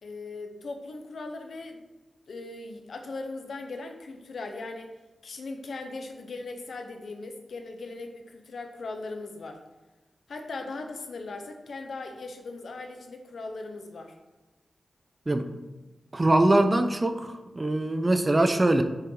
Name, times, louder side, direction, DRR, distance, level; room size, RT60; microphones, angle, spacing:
voice 1, 0.0-1.8 2.3-4.9 5.2-9.6 10.3-14.1, left 3 dB, 75° left, 5 dB, 1.0 m, -39 dB
voice 2, 16.1-18.8, right 1 dB, 30° right, 8 dB, 0.7 m, -23 dB
7.5 x 6.6 x 4.0 m, 1.1 s
wide cardioid pair, 85°, 0 cm